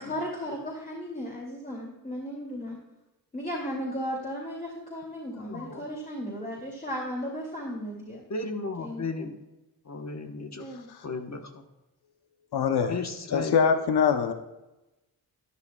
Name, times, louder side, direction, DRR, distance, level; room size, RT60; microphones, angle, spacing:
voice 1, 0.0-2.8 3.3-8.2 8.8-9.0 10.5-10.9, equal, 20° left, -4 dB, 2.6 m, -35 dB
voice 2, 5.4-5.9 8.3-9.4 9.9-10.6 11.0-11.6 12.9-13.5, left 3 dB, 45° left, 5 dB, 1.2 m, -35 dB
voice 3, 12.5-13.0 13.3-14.3, left 6 dB, 75° left, 7 dB, 0.8 m, -23 dB
12.5 x 10.0 x 2.3 m, 0.99 s
cardioid pair, 70°, 40 cm